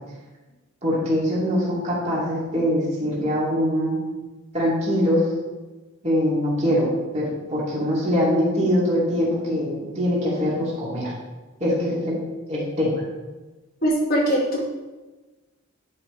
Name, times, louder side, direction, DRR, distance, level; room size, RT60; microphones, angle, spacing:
voice 1, 0.8-4.0 4.5-5.2 6.0-11.1 11.6-12.2 12.5-12.9, equal, 30° right, -7 dB, 2.8 m, -23 dB
voice 2, 13.8-14.7, equal, 40° left, -4 dB, 1.2 m, -21 dB
10.5 x 5.6 x 3.4 m, 1.2 s
head